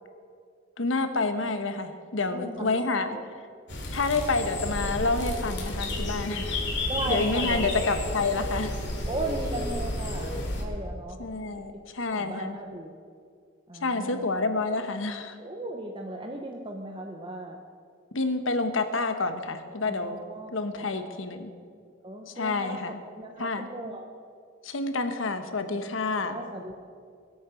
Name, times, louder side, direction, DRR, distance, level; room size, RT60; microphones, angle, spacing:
voice 1, 0.8-3.2 3.9-6.6 7.1-8.7 11.2-12.6 13.8-15.4 18.1-20.2 20.5-21.5 22.3-23.0 23.4-23.7 24.6-26.4, left 3 dB, 90° left, 8 dB, 1.2 m, -28 dB
voice 2, 2.3-3.3 6.9-7.9 9.1-11.2 11.4-11.8 12.1-12.9 13.7-14.3 15.4-17.6 19.8-20.5 20.9-21.0 22.0-24.1 26.2-26.9, right 1 dB, 25° right, 2 dB, 0.9 m, -36 dB
sound 1, 3.7-10.6, left 1 dB, 60° left, 2.8 m, -31 dB
22.5 x 8.6 x 5.2 m, 2.2 s
head